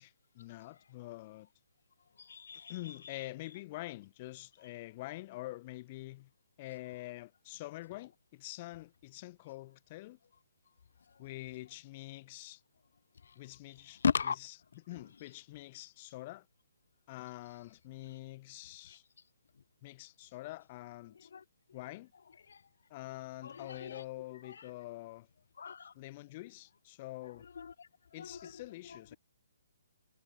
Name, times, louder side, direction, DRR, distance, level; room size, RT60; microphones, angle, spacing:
voice 1, 0.0-1.5 2.7-6.3 6.6-10.2 11.2-12.6 13.4-16.5 17.1-19.0 19.8-21.3 21.7-22.1 22.9-25.3 25.9-27.5 28.1-29.2, left 18 dB, 30° left, 3.8 m, -46 dB
voice 2, 2.2-2.7 14.0-14.4 21.3-21.4 22.5-22.6 23.4-24.0 25.6-25.9 27.6-27.9 28.2-28.4, left 6 dB, 65° left, 3.5 m, -34 dB
hypercardioid pair, 165°, 0 cm